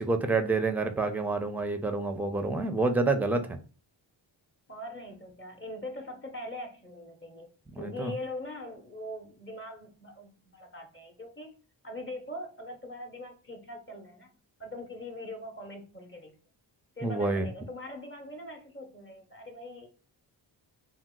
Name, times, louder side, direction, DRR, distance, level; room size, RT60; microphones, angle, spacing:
voice 1, 0.0-3.6 7.7-8.1 17.0-17.5, right 3 dB, 5° right, 0.5 m, -28 dB
voice 2, 4.7-7.5 7.8-11.6 11.8-14.3 14.6-16.3 17.0-19.9, left 1 dB, 25° left, 0.8 m, -42 dB
2.8 x 2.0 x 3.6 m
cardioid pair, 55°, 47 cm